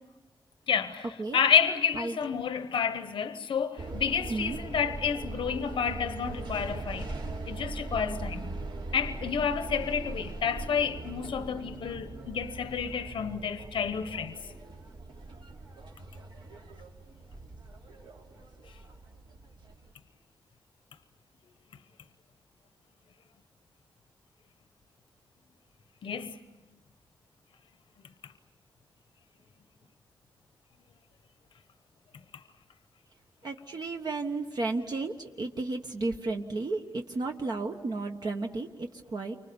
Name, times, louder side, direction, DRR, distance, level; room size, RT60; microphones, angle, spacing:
voice 1, 0.7-7.1 7.5-8.6 8.9-14.4 26.0-26.4, left 7 dB, 90° left, 1.0 m, -30 dB
sound 1, 3.8-19.9, right 2 dB, 70° right, 2.9 m, -40 dB
voice 2, 33.4-39.4, right 3 dB, 55° right, 1.3 m, -33 dB
30.0 x 25.0 x 7.1 m
wide cardioid pair, 145°, 8 cm